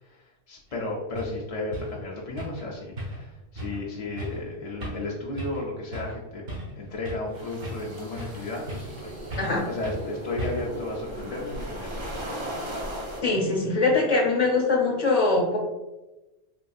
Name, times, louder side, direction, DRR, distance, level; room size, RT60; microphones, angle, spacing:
voice 1, 0.0-9.2 9.7-12.3, left 2 dB, 55° left, -3 dB, 0.4 m, -34 dB
sound 1, 0.7-0.8 1.2-1.4 1.7-2.0 2.4-2.7 3.0-3.3 3.6-3.8 4.2-4.4 4.8-5.1 5.4-5.6 5.9-6.2 6.5-7.3 7.6-8.4 8.7-9.0 9.3-9.6 9.8-10.0 10.4-10.8, right 1 dB, 55° right, 1.1 m, -35 dB
sound 2, 7.3-13.2, equal, 30° right, 0.6 m, -38 dB
sound 3, 7.3-12.4, right 2 dB, 70° right, 1.5 m, -43 dB
voice 2, 9.4-9.7 13.2-15.6, left 3 dB, 35° left, -1 dB, 0.8 m, -22 dB
3.7 x 2.6 x 2.3 m, 1.0 s
omnidirectional pair, 1.3 m